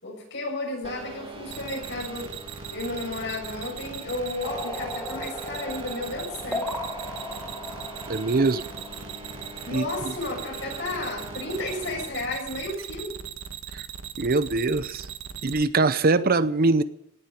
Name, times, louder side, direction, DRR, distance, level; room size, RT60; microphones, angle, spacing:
voice 1, 0.0-2.4 2.7-6.7 9.6-13.2, left 2 dB, 65° left, -1 dB, 7.2 m, -33 dB
sound 1, 0.8-12.2, right 2 dB, 30° right, 2.0 m, -42 dB
sound 2, 1.5-15.7, right 8 dB, 85° right, 1.3 m, -39 dB
sound 3, 4.4-9.8, left 1 dB, 10° left, 3.4 m, -37 dB
voice 2, 8.1-8.7 9.7-9.9 13.7-13.8 14.2-15.1 15.4-16.8, right 3 dB, 50° right, 14 dB, 0.7 m, -22 dB
18.0 x 7.4 x 9.4 m, 0.77 s
head